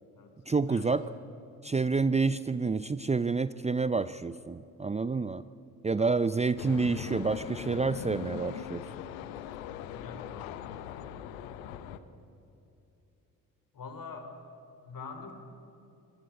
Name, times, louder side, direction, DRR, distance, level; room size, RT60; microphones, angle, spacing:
voice 1, 0.5-1.0 1.6-5.4 5.8-8.8, right 4 dB, 15° right, 14 dB, 0.7 m, -28 dB
sound 1, 6.6-12.0, left 10 dB, 80° left, 1.2 m, -40 dB
voice 2, 9.9-10.3 13.7-14.3 14.8-15.3, left 5 dB, 50° left, 6 dB, 4.5 m, -43 dB
25.0 x 19.0 x 8.6 m, 2.7 s
hypercardioid pair, 50°, 42 cm